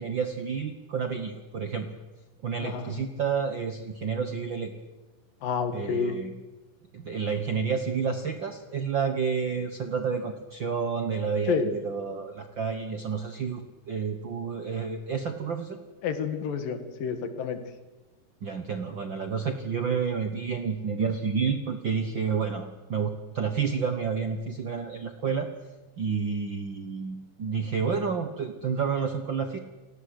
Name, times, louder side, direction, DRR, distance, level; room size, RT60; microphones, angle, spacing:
voice 1, 0.0-1.9 2.4-4.7 5.7-6.3 6.9-15.8 18.4-25.5 26.0-29.6, right 6 dB, 55° right, 7 dB, 1.3 m, -30 dB
voice 2, 2.6-3.0 5.4-6.2 11.5-11.7 16.0-17.6, left 7 dB, 80° left, 8 dB, 3.7 m, -29 dB
29.5 x 17.5 x 8.0 m, 1.2 s
omnidirectional pair, 3.9 m